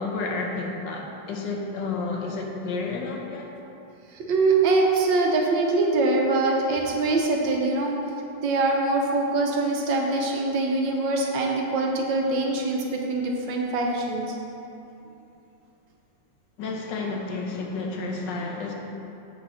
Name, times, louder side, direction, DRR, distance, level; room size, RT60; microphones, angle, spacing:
voice 1, 0.0-3.5 16.6-18.7, left 3 dB, 80° left, 0 dB, 1.6 m, -31 dB
voice 2, 4.1-8.0 8.4-14.3, right 3 dB, 85° right, 0 dB, 1.6 m, -23 dB
7.4 x 6.2 x 4.1 m, 2.8 s
omnidirectional pair, 1.9 m